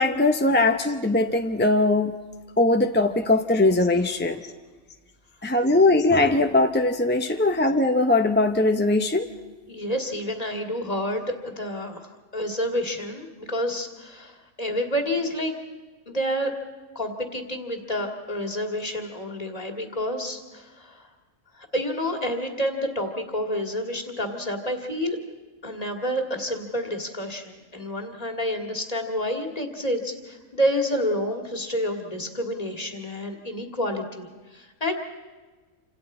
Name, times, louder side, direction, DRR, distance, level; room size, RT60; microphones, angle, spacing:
voice 1, 0.0-2.2 2.6-4.4 5.4-9.3, left 2 dB, 10° left, 5 dB, 0.5 m, -20 dB
voice 2, 9.7-12.0 12.3-15.5 16.1-16.5 17.0-21.1 21.5-25.2 25.6-34.3 34.5-34.9, equal, 30° left, 3 dB, 2.1 m, -29 dB
28.5 x 26.5 x 4.3 m, 1.3 s
omnidirectional pair, 1.4 m